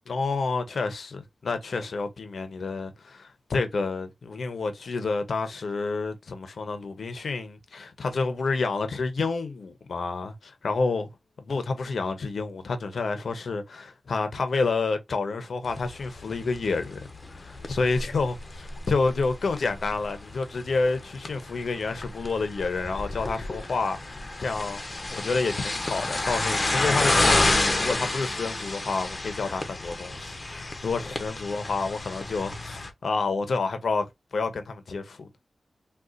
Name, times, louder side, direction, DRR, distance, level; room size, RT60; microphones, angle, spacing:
voice 1, 0.1-11.1 11.5-17.0 17.3-18.3 18.9-24.8 25.1-34.1 34.3-35.3, left 4 dB, 75° left, 0.7 m, -29 dB
sound 1, 15.7-32.9, left 2 dB, 30° left, 0.7 m, -30 dB
3.8 x 2.3 x 2.4 m
wide cardioid pair, 75°, 0 cm